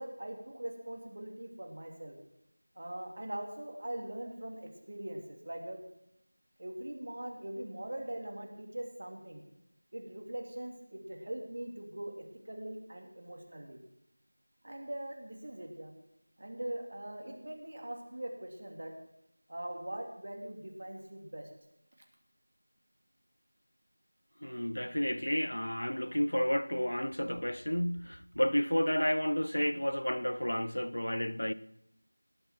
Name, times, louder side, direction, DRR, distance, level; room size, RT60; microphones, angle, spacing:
voice 1, 0.0-2.2 2.7-5.8 6.6-9.4 9.9-13.8 14.6-15.9 16.4-18.9 19.5-21.5, right 1 dB, 50° right, 3.0 m, -42 dB
voice 2, 24.4-31.5, equal, 85° left, 0.9 m, -31 dB
19.5 x 7.9 x 7.6 m
figure-of-eight pair, 175°, 0 cm